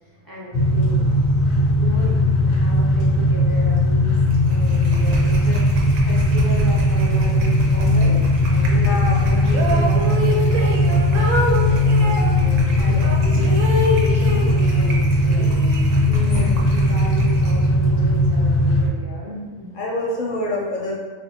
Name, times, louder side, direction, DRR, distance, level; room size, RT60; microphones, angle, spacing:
voice 1, 0.2-1.0 1.5-4.2 4.5-15.5 16.2-19.4, equal, 30° right, -7 dB, 0.4 m, -34 dB
sound 1, 0.5-18.9, left 1 dB, 85° left, 1.0 m, -18 dB
sound 2, 4.3-17.6, right 1 dB, 65° right, 0.9 m, -32 dB
voice 2, 8.7-9.3 12.9-13.0 16.1-16.5 19.3-20.9, left 1 dB, 55° left, -4 dB, 0.6 m, -28 dB
sound 3, 9.5-12.3 13.0-15.0 15.3-16.4, equal, 90° right, 1.0 m, -26 dB
3.4 x 2.5 x 2.8 m, 1.4 s
omnidirectional pair, 1.4 m